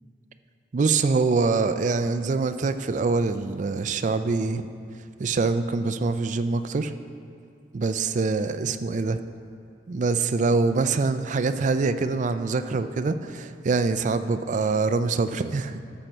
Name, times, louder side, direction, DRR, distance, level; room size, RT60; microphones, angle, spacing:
voice 1, 0.7-4.7 5.2-6.9 7.7-9.2 9.9-15.8, right 4 dB, 45° right, 10 dB, 0.4 m, -24 dB
13.0 x 6.1 x 4.4 m, 2.3 s
head